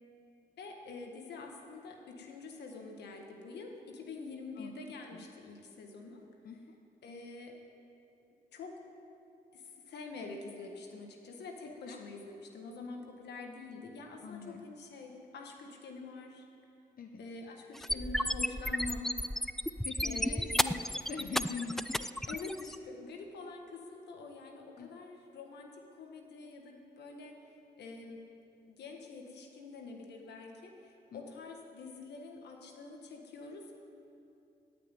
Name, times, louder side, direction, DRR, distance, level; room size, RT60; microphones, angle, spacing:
voice 1, 0.6-6.2 7.0-7.6 8.5-8.8 9.5-16.5 17.2-19.2 20.0-20.6 22.3-27.4 27.8-28.2 28.7-33.8, left 3 dB, 90° left, 2 dB, 1.5 m, -46 dB
voice 2, 6.4-6.8 11.6-12.0 14.2-14.7 17.0-17.2 19.8-22.1 24.8-24.9 31.1-31.2, left 5 dB, 60° left, 4 dB, 0.8 m, -43 dB
sound 1, 17.7-22.7, equal, ahead, 0.3 m, -33 dB
16.0 x 6.0 x 9.1 m, 2.8 s
cardioid pair, 60°, 17 cm